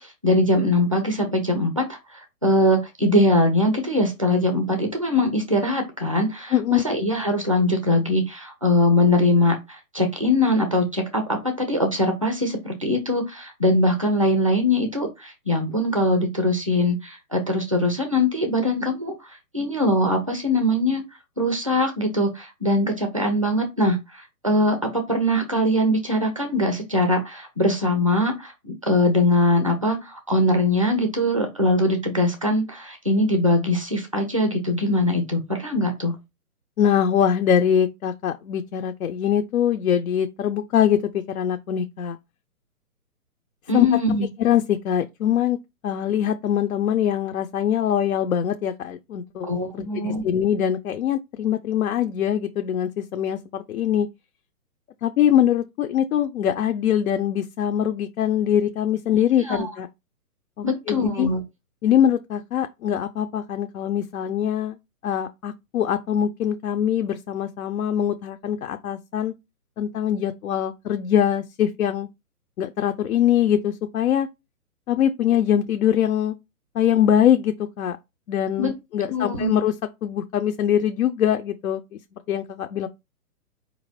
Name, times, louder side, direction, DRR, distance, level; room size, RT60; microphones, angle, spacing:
voice 1, 0.0-19.1 19.5-21.0 21.4-36.1 43.7-44.3 49.4-50.2 59.5-59.7 60.6-61.4 78.6-78.7 79.1-79.5, left 1 dB, 25° right, 0.4 m, -22 dB
voice 2, 6.5-6.8 36.8-42.2 43.7-43.9 44.4-45.6 45.8-49.5 49.7-54.1 55.0-59.9 60.6-61.3 61.8-64.8 65.0-69.3 69.8-72.1 72.6-74.3 74.9-76.4 76.7-78.0 78.3-79.7 80.0-81.8 82.3-82.9, left 9 dB, 65° left, 0.5 m, -23 dB
4.7 x 2.5 x 3.1 m
hypercardioid pair, 160°, 45 cm